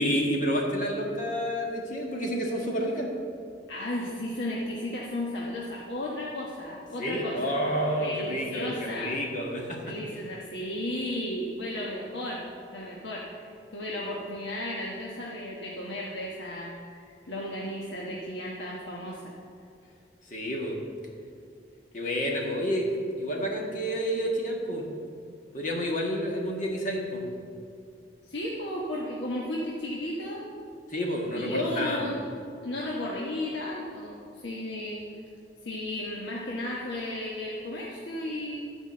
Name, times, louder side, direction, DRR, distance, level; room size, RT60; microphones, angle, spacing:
voice 1, 0.0-3.1 7.0-9.9 20.3-20.8 21.9-22.9 23.2-24.9 25.5-27.2 30.9-32.1, equal, 45° left, -1 dB, 1.6 m, -29 dB
voice 2, 3.7-7.4 8.0-9.1 9.8-12.5 12.7-19.3 28.2-30.4 31.3-32.3 32.6-35.0 35.6-38.7, left 1 dB, 90° left, -4 dB, 1.2 m, -34 dB
12.0 x 5.1 x 7.6 m, 2.4 s
head